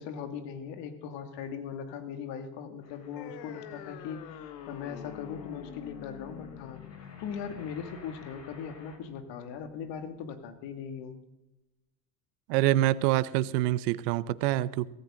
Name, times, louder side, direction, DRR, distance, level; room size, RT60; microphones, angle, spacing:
voice 1, 0.0-11.2, left 7 dB, 60° left, 8 dB, 2.4 m, -39 dB
sound 1, 2.8-9.0, left 3 dB, 30° left, 2.9 m, -54 dB
sound 2, 3.2-10.2, left 11 dB, 85° left, 1.1 m, -47 dB
voice 2, 12.5-14.9, right 15 dB, 80° right, 18 dB, 0.8 m, -26 dB
16.5 x 15.0 x 3.8 m, 0.97 s
supercardioid pair, 110°, 48 cm